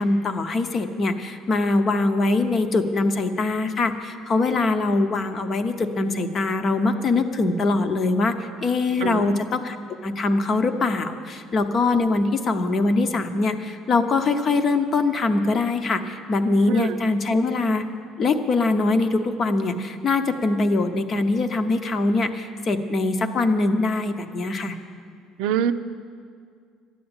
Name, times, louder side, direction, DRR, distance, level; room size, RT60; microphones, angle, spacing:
voice 1, 0.0-9.8 10.0-17.8 18.2-24.8, left 3 dB, 30° left, 9 dB, 0.8 m, -23 dB
voice 2, 9.0-9.4 16.7-17.0 25.4-25.7, right 9 dB, 85° right, 9 dB, 0.6 m, -24 dB
13.0 x 9.9 x 8.8 m, 2.2 s
cardioid pair, 170°, 0 cm